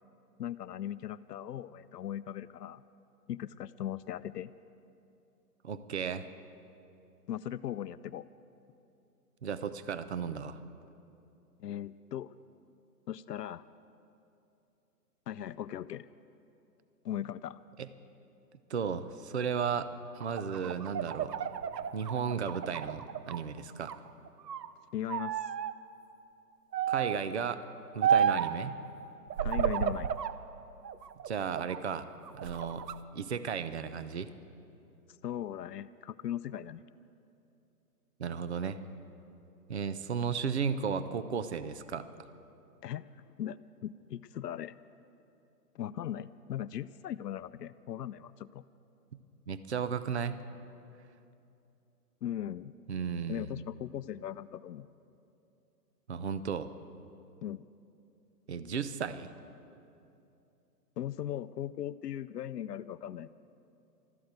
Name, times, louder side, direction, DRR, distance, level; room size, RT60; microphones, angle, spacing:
voice 1, 0.4-2.8 3.3-4.5 7.3-8.2 11.6-12.3 13.1-13.6 15.3-16.1 17.0-17.6 24.9-25.5 29.4-30.1 35.2-36.8 42.8-44.8 45.7-48.6 52.2-52.7 53.3-54.9 57.4-57.6 61.0-63.3, left 11 dB, 75° left, 14 dB, 0.6 m, -38 dB
voice 2, 5.6-6.3 9.4-10.6 17.8-17.9 18.7-21.3 21.9-23.9 26.9-27.6 27.9-28.8 31.2-32.1 32.3-32.9 33.1-34.3 38.2-38.8 39.7-42.1 49.5-50.4 52.9-53.5 56.1-56.7 58.5-59.3, right 6 dB, 45° right, 13 dB, 0.5 m, -34 dB
sound 1, 20.2-23.4 23.8-24.7 25.1-25.7 26.7-27.3 28.0-28.6 29.3-30.4 30.8-31.8 32.3-33.0, right 8 dB, 80° right, 0.8 m, -31 dB
13.0 x 13.0 x 8.0 m, 2.8 s
hypercardioid pair, 175°, 48 cm